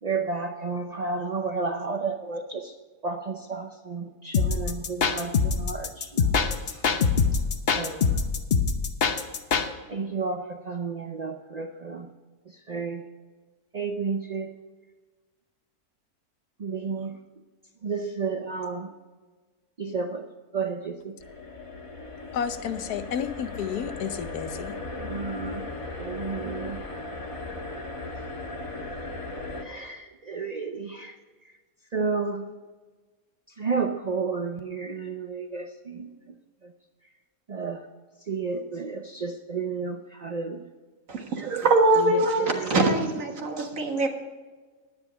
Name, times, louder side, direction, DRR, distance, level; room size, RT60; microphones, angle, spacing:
voice 1, 0.0-2.7 3.0-6.4 6.6-6.8 7.3-7.4 7.7-8.2 9.9-12.1 12.5-13.0 13.7-14.6 16.6-17.2 17.8-18.9 19.8-20.3 20.5-21.2 25.0-25.7 26.0-26.8 29.6-31.2 31.9-32.5 33.6-36.1 36.6-36.7 37.5-37.9 38.3-40.6 41.4-41.5 41.9-42.8, right 4 dB, 85° right, 5 dB, 0.3 m, -32 dB
sound 1, 4.3-9.7, left 5 dB, 45° left, 0.9 m, -23 dB
sound 2, 21.2-29.6, left 2 dB, 20° left, 1.4 m, -37 dB
voice 2, 22.3-24.7, left 8 dB, 80° left, 11 dB, 1.3 m, -31 dB
voice 3, 41.1-44.1, right 2 dB, 60° right, 3 dB, 1.8 m, -23 dB
10.5 x 9.6 x 5.1 m, 1.3 s
omnidirectional pair, 1.7 m